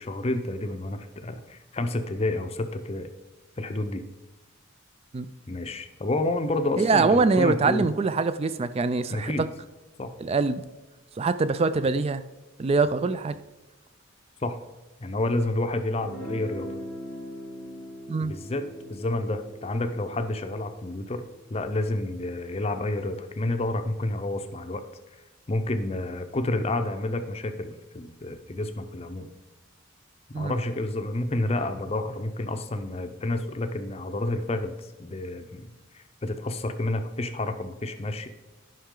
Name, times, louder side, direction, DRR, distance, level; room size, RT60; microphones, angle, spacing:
voice 1, 0.0-3.1 3.6-4.0 5.5-7.9 9.1-9.5 10.0-10.1 14.4-14.6 15.0-16.7 18.2-21.3 21.5-24.8 25.5-29.3 30.4-35.7 35.9-38.3, left 2 dB, 30° left, 0.6 m, -29 dB
voice 2, 6.8-9.5 10.2-10.6 11.2-12.2 12.6-13.4 18.1-18.3 30.3-30.5, right 4 dB, 30° right, 0.3 m, -24 dB
Guitar, 15.9-21.7, equal, 55° right, 2.0 m, -41 dB
10.0 x 5.6 x 3.8 m
head